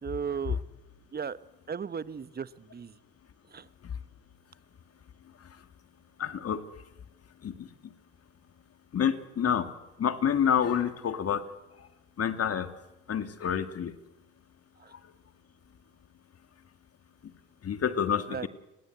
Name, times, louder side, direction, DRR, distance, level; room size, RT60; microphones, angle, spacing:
voice 1, 0.0-0.6 1.1-1.4 1.7-3.0 3.5-3.7 14.8-14.9 18.3-18.5, right 6 dB, 25° right, 16 dB, 1.2 m, -35 dB
voice 2, 6.2-6.6 7.4-7.9 8.9-9.7 10.0-11.5 11.8-11.9 12.2-12.7 13.1-14.0 14.9-15.0 17.6-18.5, left 8 dB, 45° left, 9 dB, 2.4 m, -28 dB
30.0 x 20.0 x 8.1 m, 1.0 s
hypercardioid pair, 65°, 35 cm